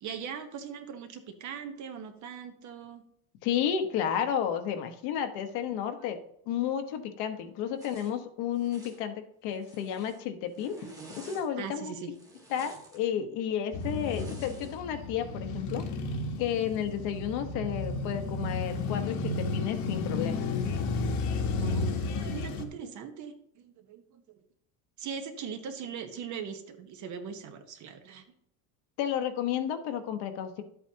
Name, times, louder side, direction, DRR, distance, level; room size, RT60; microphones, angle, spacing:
voice 1, 0.0-3.0 7.3-7.7 11.6-12.1 21.6-24.4 25.0-28.2, right 7 dB, 45° right, 7 dB, 1.2 m, -40 dB
voice 2, 3.4-6.2 6.5-10.7 11.2-11.9 12.5-15.8 16.4-20.5 29.0-30.6, left 9 dB, 65° left, 7 dB, 1.2 m, -32 dB
Zipper (clothing), 7.8-8.1 8.6-9.0 9.5-10.2 10.5-11.5 12.1-13.0 13.8-14.8, right 2 dB, 10° right, 1.5 m, -48 dB
Male speech man speaking / Motorcycle / Idling, 13.7-22.7, left 3 dB, 45° left, 1.3 m, -32 dB
11.5 x 8.1 x 2.9 m, 0.71 s
cardioid pair, 160°, 41 cm